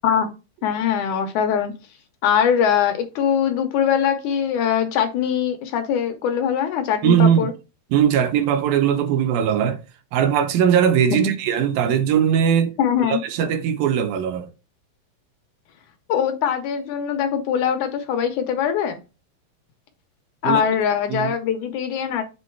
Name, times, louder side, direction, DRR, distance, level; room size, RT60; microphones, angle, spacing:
voice 1, 0.6-1.7 2.2-7.5 11.1-11.3 12.8-13.2 16.1-19.0 20.4-22.2, left 8 dB, 75° left, 1.8 m, -22 dB
voice 2, 7.0-7.5 7.9-9.8 10.1-12.8 13.1-14.5 20.4-20.6 21.1-21.3, right 8 dB, 75° right, 2.5 m, -19 dB
8.1 x 3.8 x 4.6 m
omnidirectional pair, 4.5 m